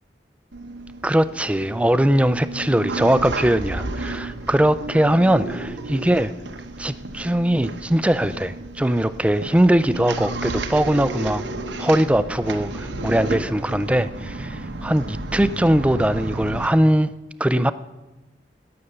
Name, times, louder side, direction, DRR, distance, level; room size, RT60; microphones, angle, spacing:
sound 1, 0.5-16.7, right 2 dB, 90° right, 1.0 m, -32 dB
voice 1, 1.0-6.3 6.8-11.4 11.8-17.1 17.4-17.7, right 1 dB, 5° right, 14 dB, 0.4 m, -20 dB
17.0 x 6.9 x 6.7 m, 1.1 s
head